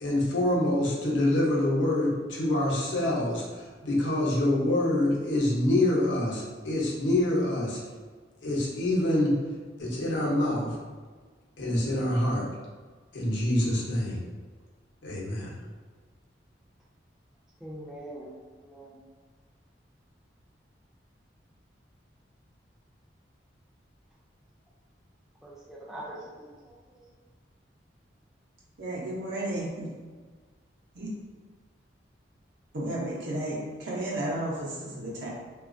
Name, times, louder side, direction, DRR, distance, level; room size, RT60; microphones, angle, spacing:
voice 1, 0.0-7.8 8.4-9.4 9.8-10.8 11.6-12.5 13.1-14.2 15.0-15.6, left 1 dB, 85° left, 0.7 m, -26 dB
voice 2, 17.6-19.0 25.4-26.8, right 1 dB, ahead, 0.3 m, -43 dB
voice 3, 28.8-29.9 30.9-31.1 32.7-35.3, right 1 dB, 75° right, 0.6 m, -33 dB
3.0 x 2.3 x 2.5 m
head